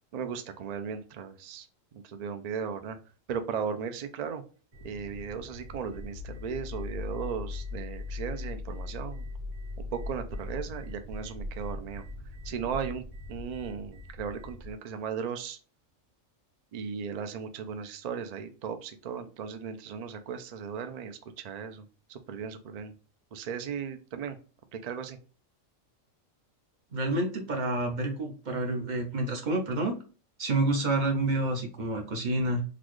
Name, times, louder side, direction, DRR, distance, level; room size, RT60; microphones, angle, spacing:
voice 1, 0.1-1.7 1.9-3.0 3.3-4.4 4.8-9.3 9.8-12.0 12.4-15.6 16.7-21.8 22.1-22.9 23.3-24.4 24.7-25.2, right 6 dB, 80° right, 8 dB, 0.3 m, -36 dB
sound 1, 4.7-14.7, left 2 dB, 25° right, 1.7 m, -40 dB
voice 2, 26.9-29.9 30.4-32.6, right 2 dB, 45° right, 3 dB, 0.7 m, -28 dB
3.9 x 2.4 x 3.1 m, 0.38 s
omnidirectional pair, 1.4 m